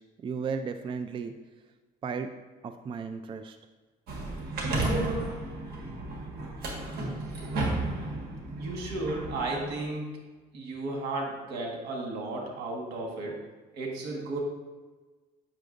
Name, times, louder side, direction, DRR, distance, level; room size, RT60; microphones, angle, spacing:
voice 1, 0.0-1.3 2.0-2.3 2.6-3.6, right 5 dB, 30° right, 8 dB, 0.3 m, -35 dB
sound 1, 4.1-9.7, right 2 dB, 65° right, 1.5 m, -32 dB
voice 2, 8.6-10.1 10.5-13.4 13.7-14.4, right 2 dB, 80° right, 0 dB, 1.5 m, -34 dB
7.5 x 6.0 x 2.5 m, 1.3 s
cardioid pair, 110°, 17 cm